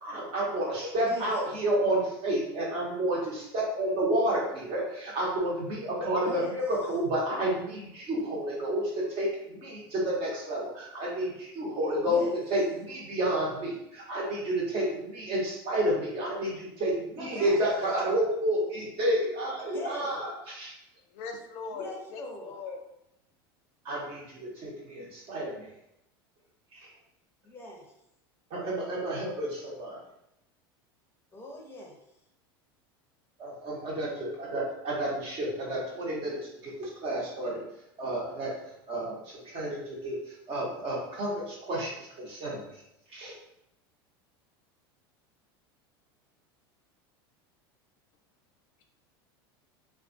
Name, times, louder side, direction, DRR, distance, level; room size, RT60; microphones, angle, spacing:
voice 1, 0.0-12.2 12.5-20.7 23.8-25.6 26.7-26.9 28.5-30.0 33.4-37.6 38.0-38.5 38.9-42.7 43.1-43.3, right 1 dB, 45° right, -4 dB, 1.0 m, -30 dB
voice 2, 1.0-1.6 6.2-6.6 12.1-12.4 17.3-17.6 19.7-20.2 21.7-22.6 27.4-27.9 31.3-32.0, left 1 dB, 20° left, -1 dB, 0.6 m, -42 dB
voice 3, 21.1-22.8, left 4 dB, 60° left, 4 dB, 0.4 m, -40 dB
2.3 x 2.3 x 2.6 m, 0.81 s
hypercardioid pair, 105°, 13 cm